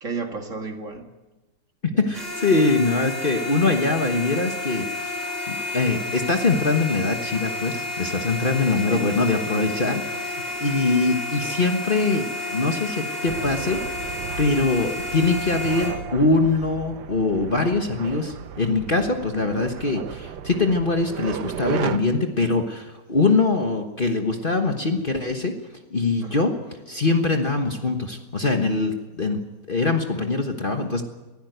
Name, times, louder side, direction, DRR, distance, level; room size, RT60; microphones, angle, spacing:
voice 1, 0.0-1.1 1.9-2.2 8.7-9.2 10.5-10.8 26.2-26.5, right 4 dB, 50° right, 4 dB, 2.2 m, -34 dB
voice 2, 2.0-5.2 5.5-25.5 25.9-26.5 26.9-29.4 29.7-31.0, left 3 dB, 35° left, 4 dB, 1.4 m, -23 dB
sound 1, 2.1-15.9, left 2 dB, ahead, 7.6 m, -31 dB
sound 2, 13.3-22.0, right 9 dB, 80° right, 1.5 m, -35 dB
23.0 x 15.5 x 8.0 m, 1.1 s
omnidirectional pair, 1.8 m